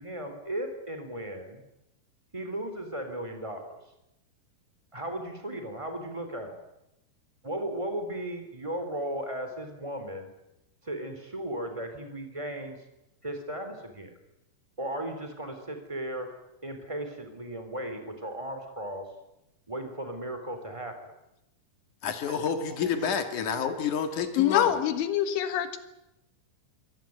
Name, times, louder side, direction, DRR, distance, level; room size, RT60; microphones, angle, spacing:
voice 1, 0.0-1.6 2.3-3.8 4.9-6.6 7.4-10.3 10.8-12.8 13.2-14.1 14.8-16.3 16.6-19.1 19.7-21.1 22.4-23.2, right 1 dB, 10° right, 6 dB, 2.6 m, -36 dB
voice 2, 22.0-24.8, left 7 dB, 55° left, 8 dB, 2.4 m, -29 dB
voice 3, 24.4-25.8, left 11 dB, 75° left, 10 dB, 3.8 m, -25 dB
24.5 x 18.0 x 9.5 m, 0.88 s
omnidirectional pair, 5.7 m